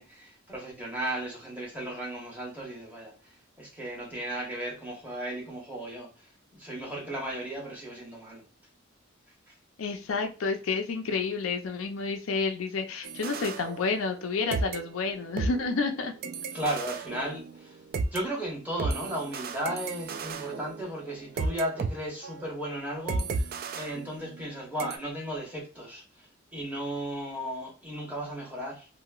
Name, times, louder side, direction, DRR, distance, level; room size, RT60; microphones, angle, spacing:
voice 1, 0.0-8.4 9.5-9.6 16.5-17.8 18.1-28.9, right 1 dB, 10° right, 1.1 m, -35 dB
voice 2, 9.8-16.1, left 4 dB, 75° left, 0.4 m, -30 dB
sound 1, 13.0-14.2 14.5-18.2 18.8-21.9 22.2-22.5 23.1-24.5 24.8-25.0, right 3 dB, 50° right, 0.3 m, -34 dB
2.9 x 2.6 x 2.3 m
head